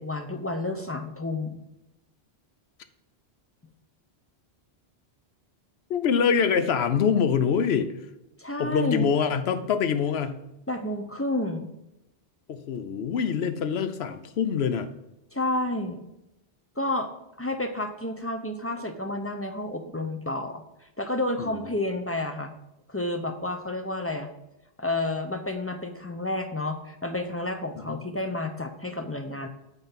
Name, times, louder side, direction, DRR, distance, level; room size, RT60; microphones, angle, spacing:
voice 1, 0.0-1.6 8.4-9.1 10.7-11.7 15.3-16.0 16.8-17.1 17.4-22.5 22.9-24.3 24.8-29.5, left 1 dB, 20° left, 5 dB, 0.4 m, -30 dB
voice 2, 5.9-8.0 8.6-10.4 12.5-14.9 21.4-21.7 27.9-28.0, left 7 dB, 75° left, 10 dB, 0.9 m, -25 dB
9.0 x 4.0 x 5.8 m, 0.89 s
omnidirectional pair, 1.1 m